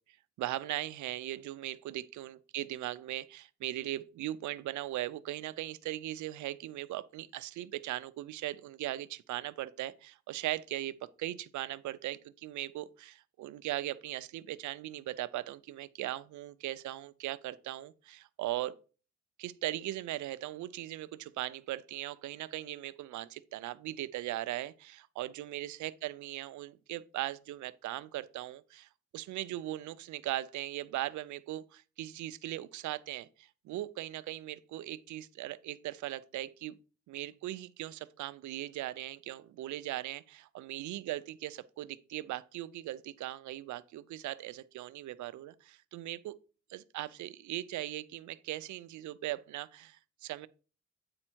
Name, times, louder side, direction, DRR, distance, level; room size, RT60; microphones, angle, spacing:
voice 1, 0.4-18.8 19.4-36.8 37.1-46.4 46.7-50.5, right 14 dB, 75° right, 0.6 m, -39 dB
8.8 x 4.3 x 4.5 m
cardioid pair, 90°, 30 cm